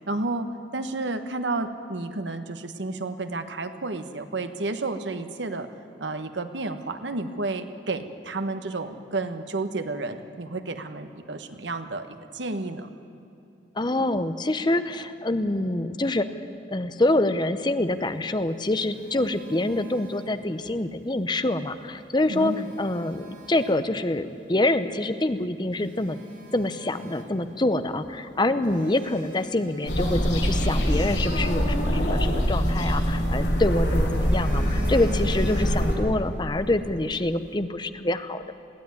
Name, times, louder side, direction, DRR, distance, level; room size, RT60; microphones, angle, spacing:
voice 1, 0.1-5.7 6.0-12.9 22.3-22.7 33.7-33.9, right 2 dB, 85° right, 8 dB, 1.3 m, -31 dB
voice 2, 13.8-16.3 16.7-26.2 26.5-38.5, left 2 dB, 25° left, 10 dB, 0.8 m, -26 dB
Telephone, 18.2-20.8 22.0-23.9 24.6-24.7 25.3-25.4 25.7-27.8 28.0-28.2 28.7-31.1 32.6-33.6 34.0-36.1 36.4-36.6, equal, 45° right, 2.7 m, -42 dB
sound 1, 29.9-36.0, equal, 80° left, 6.0 m, -24 dB
21.5 x 15.5 x 9.6 m, 2.7 s
head